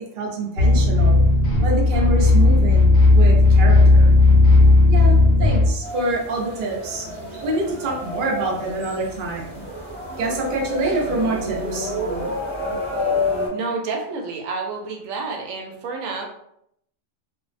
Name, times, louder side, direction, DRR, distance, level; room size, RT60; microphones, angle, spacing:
voice 1, 0.1-1.2 1.6-4.1 4.9-7.1 7.4-9.7 10.2-11.9, right 2 dB, 55° right, -1 dB, 0.6 m, -26 dB
sound 1, 0.6-5.7, left 2 dB, 75° left, 0.9 m, -14 dB
sound 2, 5.8-13.5, left 2 dB, 5° left, 0.7 m, -29 dB
voice 2, 13.5-16.3, right 4 dB, 90° right, 1 dB, 1.0 m, -29 dB
2.5 x 2.0 x 2.4 m, 0.73 s
omnidirectional pair, 1.3 m